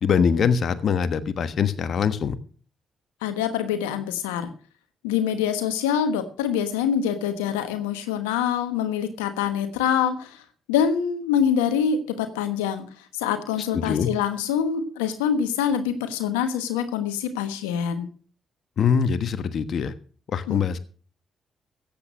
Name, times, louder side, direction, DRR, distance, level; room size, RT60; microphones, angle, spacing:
voice 1, 0.0-2.3 13.7-14.1 18.8-19.9 20.3-20.8, left 6 dB, 60° left, 11 dB, 1.2 m, -23 dB
voice 2, 3.2-4.5 5.0-10.4 10.7-18.1 20.5-20.6, left 8 dB, 85° left, 9 dB, 1.2 m, -25 dB
14.0 x 8.8 x 6.4 m, 0.42 s
hypercardioid pair, 40°, 0 cm